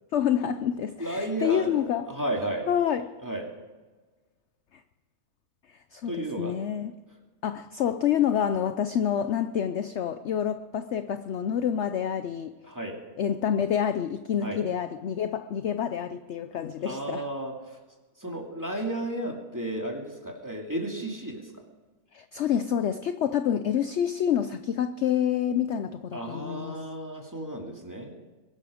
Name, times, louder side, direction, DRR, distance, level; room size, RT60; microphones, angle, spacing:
voice 1, 0.1-2.1 2.7-3.1 5.9-6.9 7.4-12.5 13.2-17.3 22.1-26.8, left 9 dB, 60° left, 0.8 m, -27 dB
voice 2, 1.0-2.7 3.2-3.5 6.1-6.6 12.6-13.0 14.4-14.6 16.9-17.5 18.2-21.5 26.1-28.1, right 1 dB, 10° right, 2.4 m, -33 dB
22.5 x 12.0 x 5.1 m
omnidirectional pair, 1.6 m